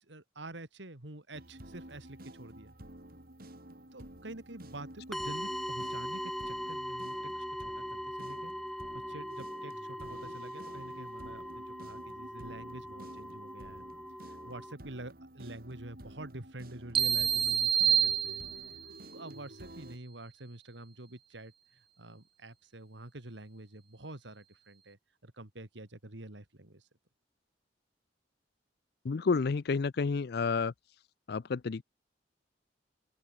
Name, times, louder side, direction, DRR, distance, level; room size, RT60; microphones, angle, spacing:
voice 1, 0.0-2.7 3.9-8.5 8.9-13.9 14.2-18.4 19.1-26.9, right 1 dB, 80° right, 2.7 m, -47 dB
sound 1, 1.3-20.0, right 1 dB, 55° right, 4.4 m, -51 dB
sound 2, 5.1-14.7, equal, ahead, 1.2 m, -40 dB
sound 3, 16.9-18.9, right 7 dB, 30° right, 0.6 m, -27 dB
voice 2, 29.0-30.7 31.3-31.8, left 4 dB, 60° left, 0.5 m, -30 dB
open air
head